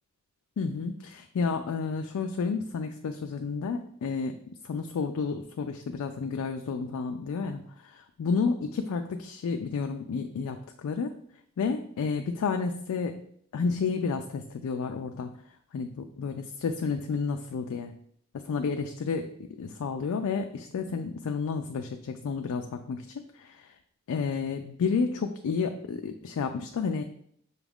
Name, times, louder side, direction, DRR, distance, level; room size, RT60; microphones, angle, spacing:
voice 1, 0.6-4.4 4.6-11.1 11.6-13.2 13.5-15.3 15.7-17.9 18.3-19.3 19.6-23.7 24.1-27.0, left 5 dB, 80° left, 5 dB, 0.3 m, -31 dB
6.0 x 2.4 x 3.5 m, 0.66 s
head